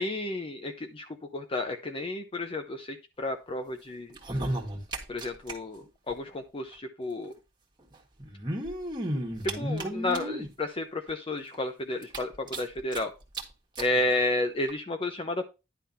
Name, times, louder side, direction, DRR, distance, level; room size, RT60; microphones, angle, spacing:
voice 1, 0.0-4.2 5.1-7.3 9.4-13.1 13.8-15.5, left 2 dB, 30° left, 6 dB, 0.6 m, -32 dB
sound 1, 4.1-5.5 5.8-5.9 6.1-6.2 7.2-7.3 8.2-10.5 11.1-11.2 11.5-11.6 12.0-13.0 13.3-13.4 13.8-13.9 14.7-14.8, right 1 dB, 25° right, 1.7 m, -33 dB
10.5 x 3.5 x 5.5 m, 0.28 s
head